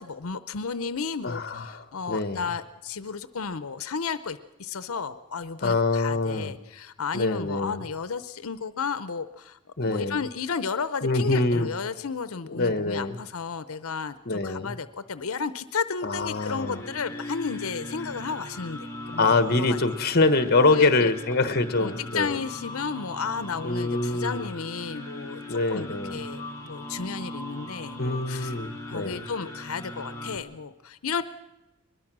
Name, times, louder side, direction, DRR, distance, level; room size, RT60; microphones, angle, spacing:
voice 1, 0.0-9.6 9.9-19.8 20.7-21.1 21.8-28.5 28.9-31.2, left 5 dB, 80° left, 13 dB, 0.7 m, -33 dB
voice 2, 1.2-2.5 5.6-6.5 7.1-7.8 9.8-10.2 11.0-11.7 12.5-13.2 14.3-14.7 16.0-16.8 19.2-22.4 23.6-24.5 25.5-26.2 28.0-29.3, left 3 dB, 45° left, 12 dB, 1.1 m, -25 dB
sound 1, 16.1-30.4, left 1 dB, 15° left, 2.9 m, -39 dB
22.5 x 21.0 x 6.1 m, 0.98 s
head